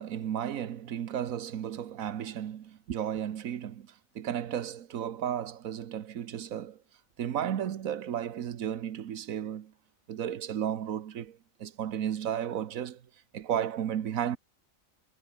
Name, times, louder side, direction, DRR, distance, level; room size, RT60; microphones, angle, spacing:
voice 1, 0.0-6.8 7.2-9.7 10.1-13.0 13.3-14.4, right 9 dB, 85° right, 1.4 m, -34 dB
omnidirectional pair, 1.4 m